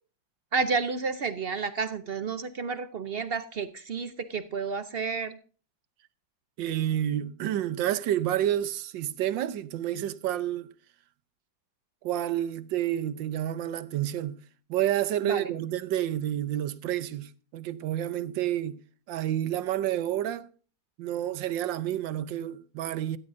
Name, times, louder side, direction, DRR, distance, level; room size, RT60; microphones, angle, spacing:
voice 1, 0.5-5.4 15.2-15.5, right 5 dB, 65° right, 0.5 m, -31 dB
voice 2, 6.6-10.7 12.0-14.4 14.7-18.8 19.1-20.5 21.0-23.2, right 12 dB, 80° right, 1.5 m, -29 dB
17.0 x 14.0 x 2.6 m
omnidirectional pair, 2.0 m